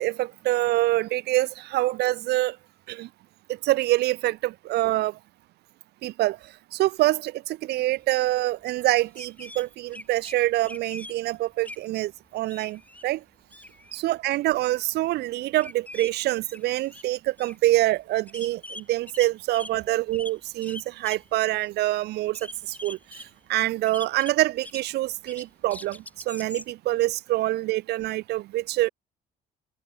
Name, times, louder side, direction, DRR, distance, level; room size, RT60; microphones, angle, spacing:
voice 1, 0.0-2.6 2.9-3.1 3.6-5.2 6.0-6.4 6.7-13.2 13.9-23.0 23.5-28.9, right 17 dB, 80° right, 1.3 m, -25 dB
sound 1, 8.9-9.0 9.1-10.4 10.7-11.2 11.6-11.8 12.2-13.0 13.3-14.0 15.6-16.1 16.4-17.0 17.4-17.6 18.0-18.1 18.3-19.8 20.1-21.3 21.6-21.7 22.3-23.3 23.9-24.9 25.3-26.7, left 2 dB, 10° left, 2.2 m, -42 dB
cardioid pair, 110°, 17 cm